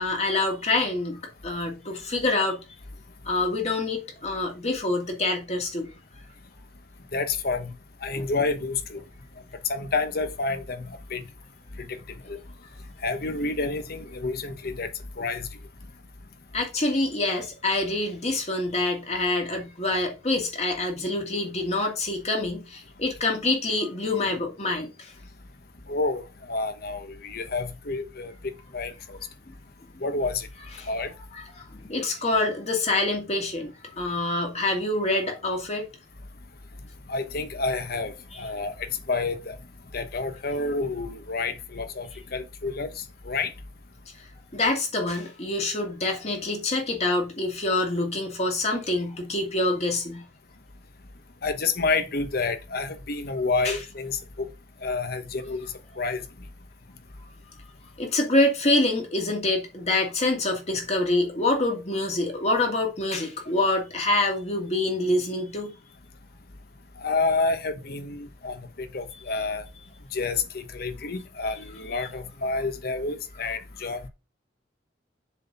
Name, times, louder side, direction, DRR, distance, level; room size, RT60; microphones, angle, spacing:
voice 1, 0.0-2.6 3.3-5.9 8.2-8.3 16.5-25.1 30.8-30.9 31.8-35.9 44.5-50.2 53.6-53.8 58.0-65.7, left 2 dB, 40° left, 2.3 m, -26 dB
voice 2, 7.1-7.7 8.0-9.0 9.7-11.2 11.8-12.0 12.3-12.4 13.0-14.9 15.2-15.5 25.9-28.3 28.7-29.2 30.0-30.5 30.9-31.1 37.1-39.6 39.9-43.5 51.4-54.5 54.8-55.7 56.0-56.2 67.0-69.6 70.1-74.0, left 3 dB, 60° left, 1.0 m, -29 dB
7.4 x 4.1 x 5.6 m
head